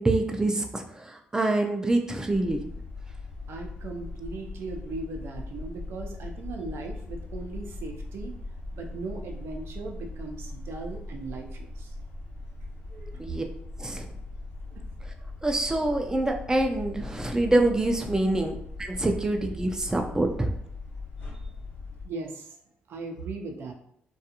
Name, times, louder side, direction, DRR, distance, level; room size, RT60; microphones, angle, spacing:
voice 1, 0.0-2.6 13.2-13.4 13.8-14.0 15.4-20.5, right 2 dB, 15° right, 3 dB, 0.5 m, -26 dB
sound 1, 2.3-22.1, left 2 dB, 60° left, 0.8 m, -40 dB
voice 2, 3.5-8.3 8.7-11.9 12.9-13.2 14.7-14.9 22.0-22.6 22.9-23.7, right 3 dB, 70° right, 2 dB, 0.5 m, -38 dB
2.4 x 2.3 x 2.8 m, 0.71 s
cardioid pair, 70°, 4 cm